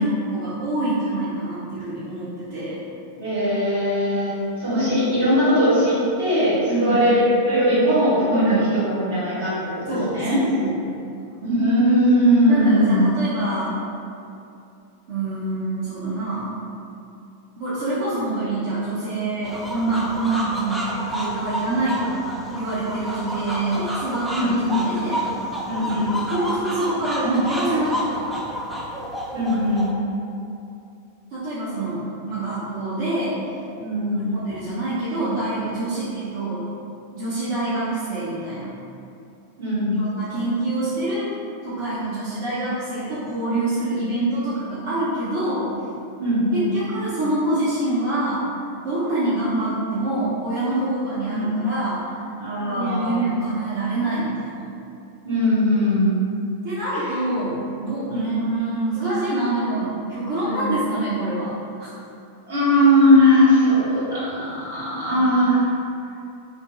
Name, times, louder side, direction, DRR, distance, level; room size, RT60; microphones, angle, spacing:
voice 1, 0.0-2.8 6.7-7.0 8.3-8.6 9.9-10.7 12.5-13.8 15.1-16.5 17.6-25.3 26.3-28.7 31.3-33.4 34.3-36.7 37.1-38.7 39.9-41.3 41.6-45.7 46.5-48.5 48.8-52.0 52.7-54.6 56.6-61.9 65.1-65.3, right 2 dB, 60° right, -11 dB, 0.7 m, -26 dB
voice 2, 3.2-10.4 11.4-13.0 24.3-24.8 25.7-26.2 29.3-29.9 33.8-34.4 39.6-40.0 46.2-46.7 51.3-51.6 52.4-53.2 55.2-56.2 58.1-58.4 60.4-60.7 62.5-65.7, equal, 80° right, -11 dB, 1.4 m, -20 dB
sound 1, 19.4-29.9, equal, 5° right, 0.4 m, -30 dB
2.9 x 2.5 x 2.2 m, 2.6 s
hypercardioid pair, 100°, 0 cm